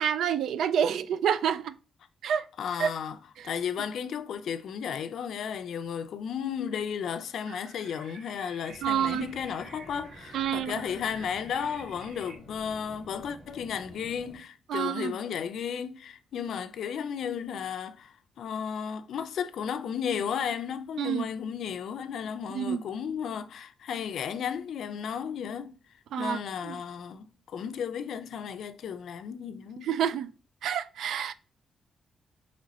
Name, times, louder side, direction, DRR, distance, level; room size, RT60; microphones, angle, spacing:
voice 1, 0.0-1.8 2.2-2.5 2.8-2.9 8.8-9.3 10.3-10.8 14.7-15.1 21.0-21.3 22.5-22.8 26.1-26.8 29.8-30.3 30.6-31.3, right 8 dB, 80° right, 0.3 m, -28 dB
voice 2, 2.6-3.2 3.4-25.8 26.2-29.9, left 7 dB, 65° left, 0.4 m, -34 dB
sound 1, 7.5-12.3, right 4 dB, 45° right, 0.6 m, -51 dB
sound 2, 8.7-14.4, equal, 25° right, 1.6 m, -50 dB
4.1 x 3.0 x 3.9 m
wide cardioid pair, 175°, 0 cm